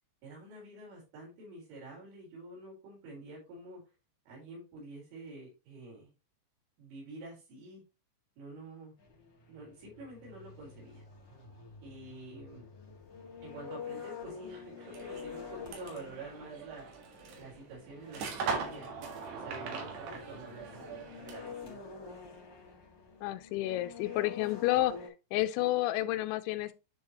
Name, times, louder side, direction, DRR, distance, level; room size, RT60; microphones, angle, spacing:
voice 1, 0.2-3.8 4.3-6.1 6.8-7.8 8.4-8.9 9.5-11.0 11.8-12.7 13.4-16.9 17.4-19.0 19.3-21.8, right 2 dB, 90° right, 6.4 m, -48 dB
sound 1, 9.0-25.1, left 6 dB, 55° left, 1.3 m, -48 dB
sound 2, 14.8-21.6, right 5 dB, 65° right, 3.7 m, -41 dB
voice 2, 23.2-24.9 25.3-26.7, left 16 dB, 85° left, 3.0 m, -30 dB
10.5 x 4.8 x 2.9 m
omnidirectional pair, 5.4 m